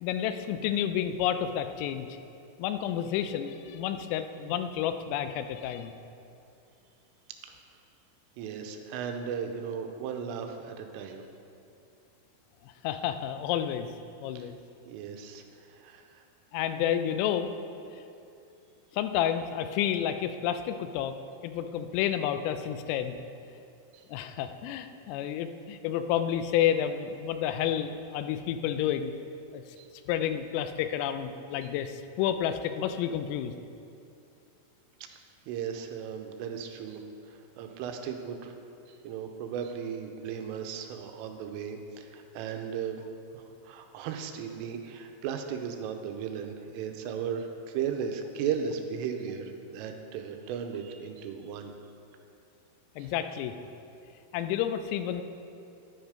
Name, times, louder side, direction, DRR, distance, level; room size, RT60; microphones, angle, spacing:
voice 1, 0.0-2.1 2.6-5.9 12.6-13.9 14.2-14.6 16.5-17.5 17.9-18.0 18.9-21.2 21.4-23.2 24.1-29.1 29.5-29.6 30.1-33.5 53.0-53.5 54.3-55.2, left 10 dB, 85° left, 9 dB, 3.3 m, -30 dB
voice 2, 8.4-11.2 14.4-14.5 14.8-16.2 23.9-24.0 29.8-29.9 35.1-35.2 35.5-38.6 38.9-43.0 43.3-51.7 53.0-53.1, right 7 dB, 90° right, 5 dB, 3.3 m, -36 dB
11.0 x 10.5 x 5.2 m, 2.6 s
omnidirectional pair, 5.8 m